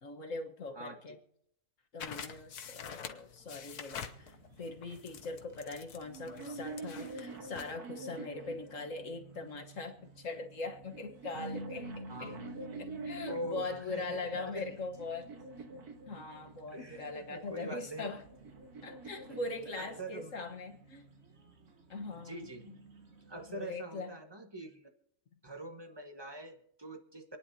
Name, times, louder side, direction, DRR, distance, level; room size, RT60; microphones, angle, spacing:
voice 1, 0.0-1.2 1.9-12.4 12.8-15.4 16.1-18.2 18.8-21.1 21.9-22.5 23.5-24.1, left 3 dB, 55° left, 4 dB, 1.7 m, -41 dB
sound 1, 2.0-7.8, left 7 dB, 80° left, 1.5 m, -47 dB
sound 2, 4.1-23.7, right 1 dB, 45° right, 1.5 m, -53 dB
sound 3, 6.0-9.4 10.3-13.7 14.4-16.8 17.9-20.3, right 3 dB, 75° right, 1.9 m, -47 dB
voice 2, 12.1-12.5 13.3-14.6 16.7-18.1 19.3-20.3 22.1-22.7 23.3-24.9 25.4-27.4, right 1 dB, 15° right, 5 dB, 1.4 m, -44 dB
27.0 x 10.0 x 2.8 m, 0.73 s
omnidirectional pair, 1.6 m